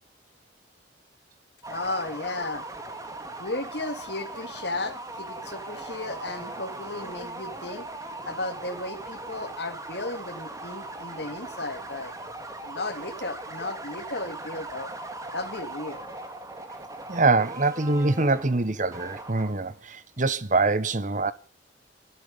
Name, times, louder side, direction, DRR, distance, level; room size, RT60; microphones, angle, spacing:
sound 1, 1.6-19.8, right 2 dB, 15° right, 2.2 m, -39 dB
voice 1, 1.7-2.7 3.4-7.9 8.3-12.1 12.6-14.9 15.3-16.0, left 2 dB, 60° left, 2.2 m, -34 dB
voice 2, 17.1-21.3, right 3 dB, 40° right, 1.1 m, -24 dB
18.5 x 12.5 x 5.3 m
head